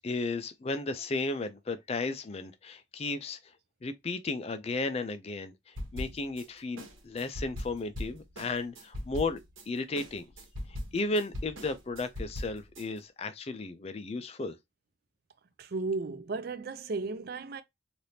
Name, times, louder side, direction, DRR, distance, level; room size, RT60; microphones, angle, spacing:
voice 1, 0.0-3.5 3.8-9.4 9.7-10.3 10.9-14.6, left 3 dB, 30° left, 0.4 m, -34 dB
sound 1, 5.8-6.4 6.8-9.6 10.0-12.8, left 1 dB, 75° right, 1.2 m, -40 dB
voice 2, 15.6-17.6, right 3 dB, 50° right, 0.4 m, -34 dB
3.3 x 2.5 x 2.7 m
head